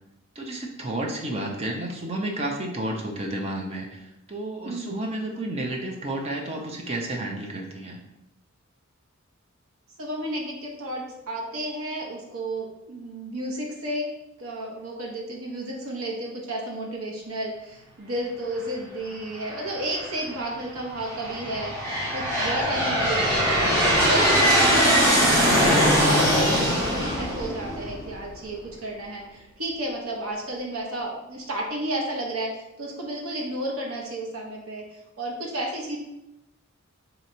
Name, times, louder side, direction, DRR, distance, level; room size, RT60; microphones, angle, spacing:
voice 1, 0.4-8.0, right 1 dB, 30° right, 1 dB, 0.5 m, -31 dB
voice 2, 10.0-14.1 14.4-36.0, right 1 dB, 75° right, -1 dB, 0.8 m, -32 dB
Aircraft, 19.5-20.1 20.8-28.3, equal, 10° right, 1.4 m, -21 dB
2.8 x 2.8 x 4.3 m, 0.90 s
head